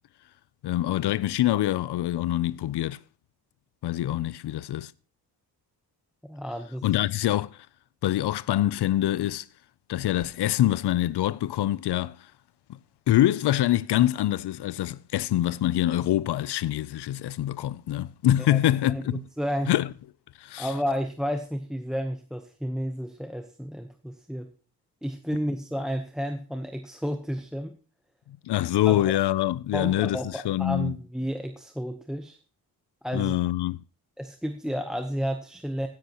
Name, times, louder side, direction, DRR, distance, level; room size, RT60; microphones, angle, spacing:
voice 1, 0.6-3.0 3.8-4.9 6.8-7.7 8.0-9.5 9.9-12.2 13.1-19.2 19.7-19.9 20.4-20.7 28.4-31.0 33.1-33.8, left 13 dB, 90° left, 0.6 m, -25 dB
voice 2, 6.2-6.8 18.5-18.6 18.9-19.7 20.6-24.5 25.0-27.7 28.8-29.2 29.7-32.4 33.0-33.3 34.2-35.9, equal, ahead, 0.9 m, -31 dB
16.0 x 10.5 x 2.9 m
wide cardioid pair, 145°, 39 cm